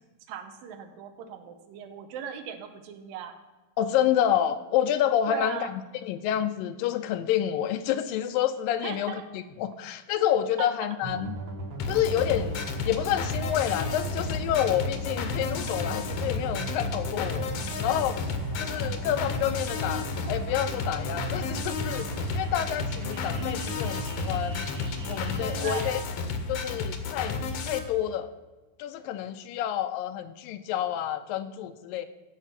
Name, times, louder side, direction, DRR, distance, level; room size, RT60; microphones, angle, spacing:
voice 1, 0.3-3.4 5.3-5.7 8.8-9.3 10.6-10.7 25.6-26.0, right 8 dB, 80° right, 7 dB, 2.7 m, -38 dB
voice 2, 3.8-9.2 9.6-11.3 11.9-12.6 12.9-17.5 17.8-18.2 18.6-22.1 22.3-24.7 25.1-26.0 26.5-27.4 27.7-28.3 28.8-32.1, left 10 dB, 85° left, 9 dB, 2.2 m, -28 dB
sound 1, 11.0-25.8, right 3 dB, 45° right, 1.7 m, -37 dB
sound 2, 11.8-27.8, left 4 dB, 65° left, 1.6 m, -32 dB
14.0 x 5.5 x 5.8 m, 1.2 s
omnidirectional pair, 4.0 m